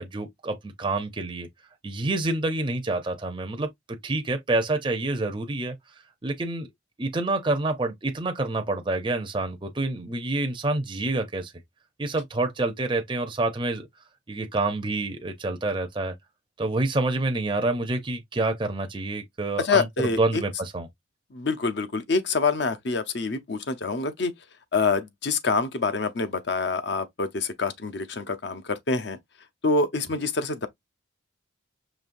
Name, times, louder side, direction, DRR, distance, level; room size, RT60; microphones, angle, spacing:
voice 1, 0.0-1.5 1.8-3.7 4.0-5.8 6.2-6.7 7.0-11.5 12.0-13.9 14.3-16.2 16.6-20.9, right 2 dB, 25° right, 0.5 m, -27 dB
voice 2, 19.6-20.4 21.3-24.3 24.7-29.2 29.6-30.7, left 4 dB, 55° left, 0.7 m, -26 dB
5.2 x 3.1 x 2.5 m
head